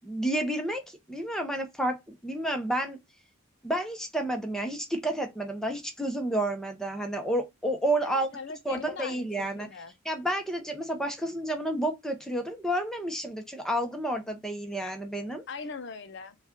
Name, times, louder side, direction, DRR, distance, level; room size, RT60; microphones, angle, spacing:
voice 1, 0.0-3.0 3.6-8.3 8.7-9.7 10.0-15.4, right 1 dB, ahead, 0.7 m, -30 dB
voice 2, 8.0-9.9 15.5-16.4, left 4 dB, 55° left, 0.5 m, -40 dB
4.0 x 2.3 x 3.6 m
head